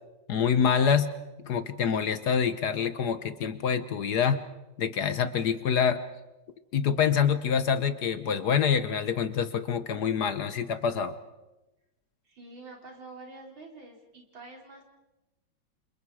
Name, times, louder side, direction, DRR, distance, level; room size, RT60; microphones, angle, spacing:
voice 1, 0.3-1.1 1.4-4.4 4.8-6.0 6.7-11.2, left 7 dB, 60° left, 11 dB, 1.4 m, -26 dB
voice 2, 12.2-14.8, right 3 dB, 75° right, 1 dB, 4.6 m, -47 dB
29.0 x 27.0 x 4.8 m, 1.0 s
omnidirectional pair, 2.2 m